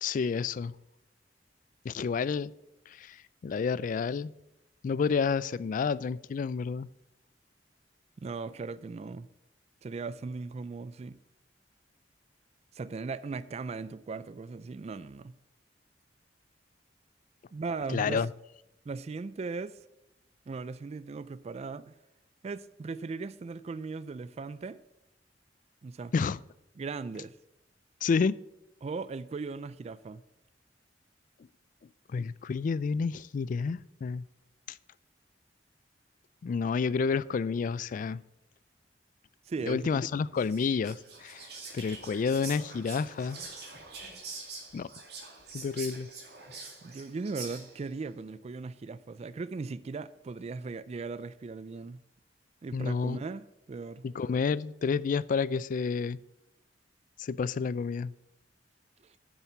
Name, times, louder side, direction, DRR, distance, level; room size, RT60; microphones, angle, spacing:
voice 1, 0.0-0.7 1.9-2.5 3.0-3.2 3.4-4.3 4.8-6.9 17.9-18.3 26.1-26.4 28.0-28.3 32.1-34.2 36.4-38.2 39.7-41.4 41.7-43.4 44.7-44.9 45.5-46.1 52.7-53.2 54.0-56.2 57.2-58.1, left 5 dB, 45° left, 0.3 m, -29 dB
voice 2, 8.2-9.3 9.8-11.2 12.7-15.3 17.5-18.2 18.9-19.7 20.5-21.9 22.4-24.8 25.8-26.1 26.8-27.4 28.8-30.2 39.5-40.0 46.8-52.0 52.6-54.1, right 4 dB, 35° right, 0.3 m, -38 dB
Whispering, 40.3-47.9, right 4 dB, 65° right, 2.2 m, -45 dB
7.3 x 6.8 x 7.2 m
head